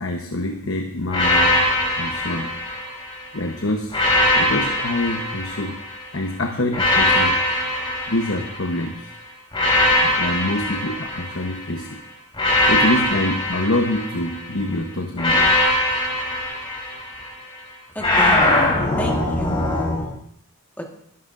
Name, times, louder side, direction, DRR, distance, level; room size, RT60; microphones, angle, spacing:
voice 1, 0.0-1.7 2.0-2.5 3.3-4.0 4.3-5.8 6.1-7.4 8.1-9.1 10.0-12.0 12.6-15.5, left 1 dB, 60° left, 3 dB, 1.1 m, -25 dB
sound 1, 1.1-3.3 3.9-6.1 6.7-8.9 9.5-11.7 12.3-14.5 15.2-17.3 18.0-20.0, left 1 dB, 25° left, 3.9 m, -21 dB
voice 2, 17.9-18.4 19.0-20.1 20.8-20.9, equal, 10° left, 0 dB, 1.5 m, -32 dB
22.0 x 11.5 x 2.6 m, 0.71 s
head